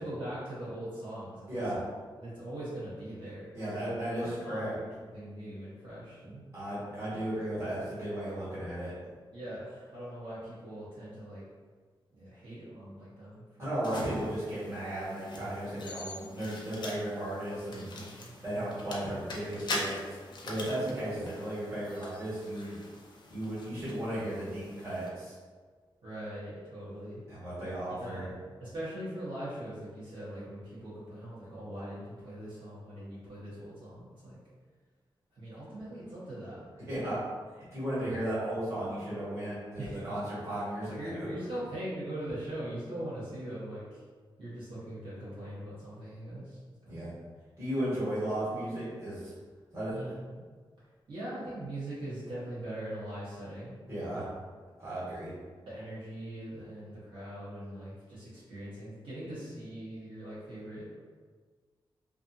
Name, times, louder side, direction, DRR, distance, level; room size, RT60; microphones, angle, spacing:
voice 1, 0.0-1.6 2.2-3.9 4.2-6.4 9.3-11.4 12.1-13.8 17.7-18.7 26.0-27.2 28.0-34.4 35.3-36.9 39.8-40.1 41.0-44.0 44.4-46.6 46.8-47.1 49.9-50.4 51.1-53.8 54.1-54.3 55.7-61.0, right 1 dB, 65° right, -11 dB, 1.0 m, -41 dB
voice 2, 1.5-1.8 3.5-4.8 6.5-9.0 13.6-17.9 18.4-20.2 20.4-22.8 23.3-25.4 27.3-28.2 36.9-37.3 37.6-41.3 46.9-47.1 47.6-49.3 49.7-50.1 53.9-54.3 54.8-55.3, right 1 dB, 30° right, -11 dB, 1.2 m, -35 dB
sound 1, 13.8-25.1, left 2 dB, 55° left, 0.4 m, -43 dB
2.5 x 2.4 x 2.6 m, 1.5 s
wide cardioid pair, 180°, 9 cm